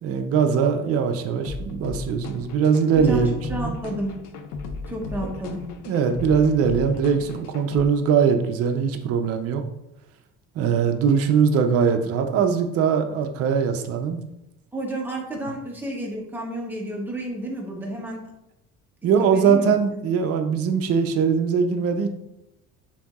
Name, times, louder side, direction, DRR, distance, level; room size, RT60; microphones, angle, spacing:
voice 1, 0.0-3.8 5.2-5.3 5.9-9.6 10.6-14.2 19.0-22.1, right 6 dB, 50° right, 6 dB, 0.5 m, -21 dB
sound 1, 1.4-7.8, left 4 dB, 85° left, 0.6 m, -35 dB
voice 2, 2.9-4.2 4.9-5.7 14.7-18.2 19.2-19.7, right 1 dB, 5° right, -2 dB, 0.9 m, -31 dB
6.9 x 2.7 x 2.3 m, 0.89 s
cardioid pair, 140°, 31 cm